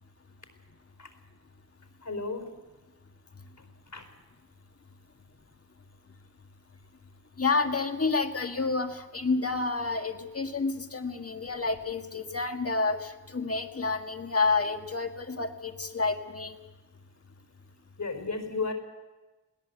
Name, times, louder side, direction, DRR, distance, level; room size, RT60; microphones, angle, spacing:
voice 1, 2.0-2.5 3.9-4.0 18.0-18.7, left 4 dB, 75° left, 6 dB, 4.8 m, -33 dB
voice 2, 7.4-16.6, left 4 dB, 50° left, 5 dB, 1.8 m, -29 dB
21.5 x 18.0 x 8.2 m, 1.2 s
wide cardioid pair, 55°, 31 cm